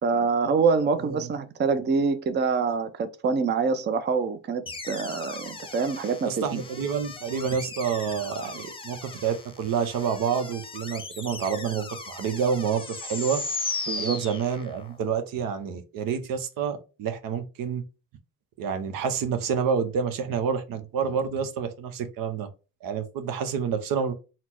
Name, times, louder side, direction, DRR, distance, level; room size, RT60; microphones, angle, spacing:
voice 1, 0.0-6.6 13.9-14.2, right 5 dB, 30° right, 0.5 m, -25 dB
sound 1, 4.7-14.9, left 3 dB, 15° left, 0.7 m, -37 dB
voice 2, 6.3-13.4 14.0-17.8 18.6-22.5 22.8-24.1, right 6 dB, 80° right, 0.8 m, -28 dB
4.1 x 2.1 x 4.3 m
cardioid pair, 95°, 34 cm